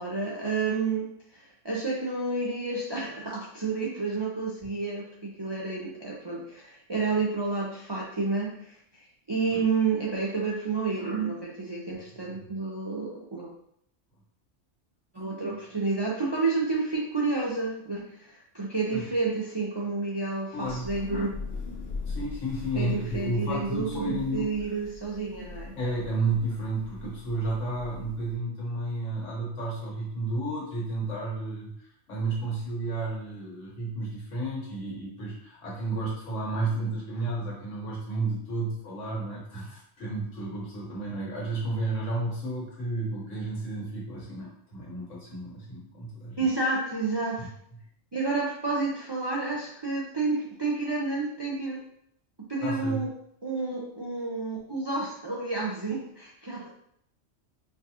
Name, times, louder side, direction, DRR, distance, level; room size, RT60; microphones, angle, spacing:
voice 1, 0.0-13.5 15.1-21.3 22.7-25.8 46.4-47.5 48.1-51.8 52.5-53.1 53.4-56.7, right 3 dB, 45° right, -4 dB, 0.3 m, -30 dB
voice 2, 20.5-20.9 22.1-24.5 25.8-46.4 47.4-47.5 52.6-53.0, right 2 dB, 80° left, -4 dB, 1.6 m, -32 dB
Thunder / Rain, 20.6-28.3, left 4 dB, 45° left, 0.8 m, -41 dB
4.4 x 2.4 x 2.8 m, 0.70 s
omnidirectional pair, 1.3 m